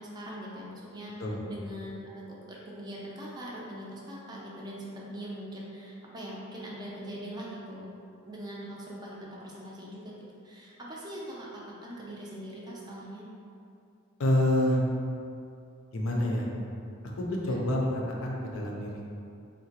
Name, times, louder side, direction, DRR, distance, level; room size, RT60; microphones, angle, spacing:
voice 1, 0.0-7.9 8.3-10.2 10.4-13.3 17.4-17.7, equal, 20° right, -4 dB, 0.4 m, -42 dB
voice 2, 14.2-14.8 15.9-16.5 17.2-19.1, left 1 dB, 65° left, -2 dB, 0.5 m, -27 dB
3.7 x 2.1 x 2.8 m, 2.6 s
head